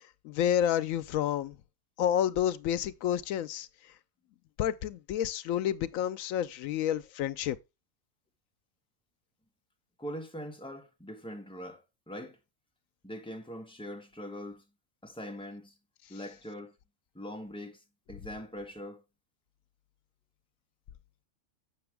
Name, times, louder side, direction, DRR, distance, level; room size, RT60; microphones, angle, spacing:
voice 1, 0.2-1.5 2.0-3.7 4.6-7.6, left 10 dB, 80° left, 1.0 m, -29 dB
voice 2, 10.0-12.4 13.0-14.6 15.0-15.7 16.1-16.7 17.1-17.8 18.1-19.0, equal, 5° left, 0.9 m, -42 dB
6.9 x 6.6 x 3.3 m
omnidirectional pair, 1.4 m